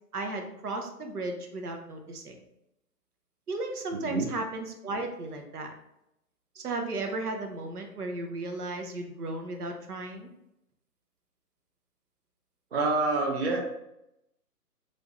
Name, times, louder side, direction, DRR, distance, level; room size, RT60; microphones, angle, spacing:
voice 1, 0.1-2.4 3.5-5.7 6.5-10.3, right 2 dB, 70° right, 4 dB, 0.8 m, -35 dB
voice 2, 12.7-13.6, right 3 dB, 45° right, 0 dB, 0.5 m, -26 dB
3.2 x 2.6 x 3.0 m, 0.83 s
figure-of-eight pair, 145°, 48 cm